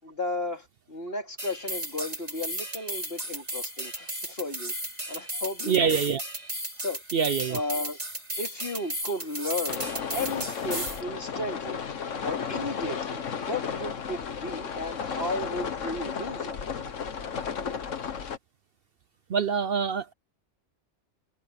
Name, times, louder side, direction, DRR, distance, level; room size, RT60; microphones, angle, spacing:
voice 1, 0.0-4.7 5.1-6.0 6.8-7.0 7.5-8.0 8.4-11.9 12.2-16.6, left 2 dB, 50° left, 3.5 m, -34 dB
sound 1, 1.4-11.0, right 1 dB, 30° right, 4.6 m, -35 dB
voice 2, 5.7-6.2 7.1-7.6 19.3-20.1, right 6 dB, 55° right, 0.8 m, -25 dB
sound 2, 9.7-18.4, left 6 dB, 85° left, 1.6 m, -33 dB
omnidirectional pair, 1.3 m